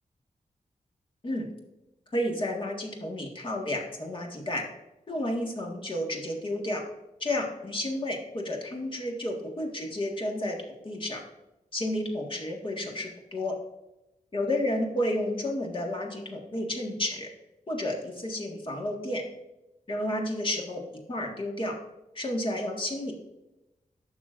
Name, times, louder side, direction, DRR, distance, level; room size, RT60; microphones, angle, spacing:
voice 1, 2.1-4.6 5.1-6.8 7.2-10.6 10.8-11.2 11.7-13.5 14.3-17.3 17.7-19.2 19.9-20.8 21.1-21.7 22.1-23.1, left 1 dB, 40° left, 0 dB, 1.6 m, -31 dB
12.0 x 6.1 x 2.5 m, 0.96 s
wide cardioid pair, 150°, 14 cm